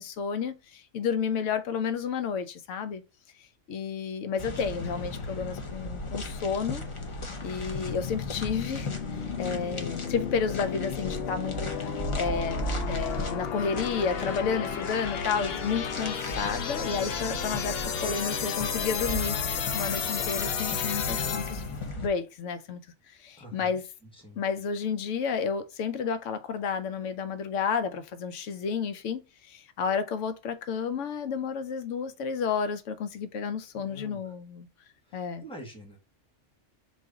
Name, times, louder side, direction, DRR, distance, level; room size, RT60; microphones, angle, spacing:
voice 1, 0.0-3.0 3.7-6.8 7.4-19.4 19.7-21.6 22.0-22.8 23.1-23.8 24.4-34.7 35.1-35.4, left 6 dB, 85° left, 1.0 m, -31 dB
sound 1, 4.4-22.1, left 2 dB, 30° left, 0.7 m, -36 dB
sound 2, 7.8-21.8, left 7 dB, 60° left, 0.8 m, -33 dB
voice 2, 23.4-23.8 24.2-24.4 33.7-34.4 35.1-36.0, equal, 5° left, 1.1 m, -46 dB
4.0 x 2.5 x 4.7 m
omnidirectional pair, 1.2 m